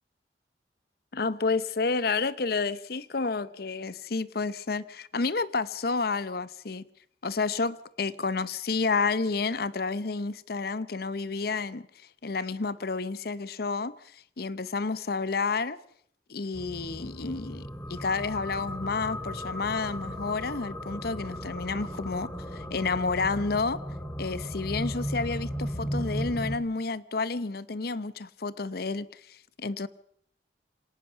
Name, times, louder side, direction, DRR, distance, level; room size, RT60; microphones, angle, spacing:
voice 1, 1.1-6.8 7.2-11.9 12.2-15.8 16.3-23.8 24.2-29.9, left 4 dB, 60° left, 0.8 m, -30 dB
sound 1, 16.6-26.6, equal, 15° left, 1.8 m, -36 dB
25.5 x 18.5 x 5.7 m
head